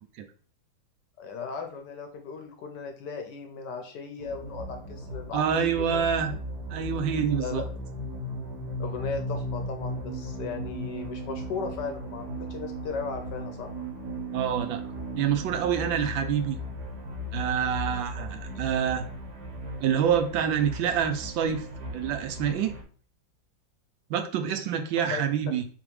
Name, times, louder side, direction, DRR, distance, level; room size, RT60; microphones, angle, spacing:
voice 1, 1.2-6.1 7.4-7.6 8.8-13.7 25.1-25.2, left 5 dB, 70° left, 5 dB, 1.1 m, -36 dB
sound 1, 4.2-22.8, equal, 60° right, 1.4 m, -40 dB
voice 2, 5.3-6.3 6.7-7.6 14.3-14.8 15.1-16.6 17.3-19.0 19.8-21.6 21.9-22.8 24.1-25.6, right 8 dB, 80° right, 7 dB, 1.3 m, -26 dB
sound 2, 5.7-21.3, equal, 55° left, 0.6 m, -38 dB
4.0 x 3.4 x 3.0 m, 0.42 s
omnidirectional pair, 2.2 m